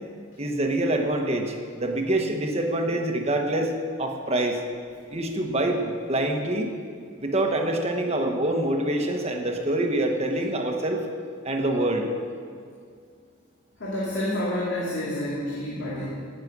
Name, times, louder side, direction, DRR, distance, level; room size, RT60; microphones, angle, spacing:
voice 1, 0.4-3.7 4.0-4.6 5.1-6.7 7.2-11.0 11.4-12.1, right 1 dB, 30° right, 3 dB, 1.2 m, -25 dB
voice 2, 13.8-16.1, left 1 dB, 60° left, -8 dB, 2.6 m, -29 dB
17.5 x 6.7 x 6.1 m, 2.3 s
head